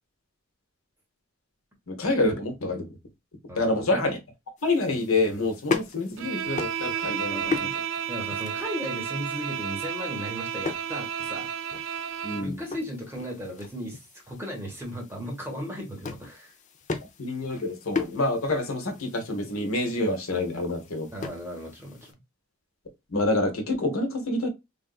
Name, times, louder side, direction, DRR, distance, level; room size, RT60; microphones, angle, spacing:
voice 1, 1.9-3.0 3.5-4.2 4.6-7.7 12.2-12.6 17.2-21.1 23.1-24.5, left 2 dB, 75° left, 1.0 m, -27 dB
voice 2, 3.5-4.0 7.3-7.8 8.1-11.5 12.4-16.5 21.1-22.2, equal, 10° right, 1.1 m, -36 dB
sound 1, 4.6-22.1, left 4 dB, 35° left, 0.4 m, -38 dB
Bowed string instrument, 6.2-12.5, right 8 dB, 60° right, 0.3 m, -32 dB
3.5 x 2.6 x 2.3 m
head